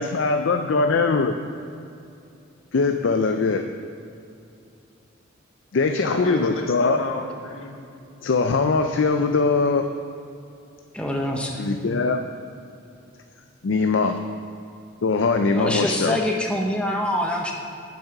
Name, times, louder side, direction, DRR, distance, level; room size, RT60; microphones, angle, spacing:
voice 1, 0.0-1.3 2.7-3.7 5.7-7.0 8.2-9.9 11.6-12.3 13.6-14.2 15.0-16.3, left 4 dB, 65° left, 6 dB, 0.4 m, -21 dB
voice 2, 6.0-7.7, left 2 dB, 85° left, 1 dB, 1.3 m, -31 dB
voice 3, 10.9-11.7 15.5-17.5, left 1 dB, 5° left, 0 dB, 0.8 m, -25 dB
8.0 x 7.4 x 5.8 m, 2.6 s
head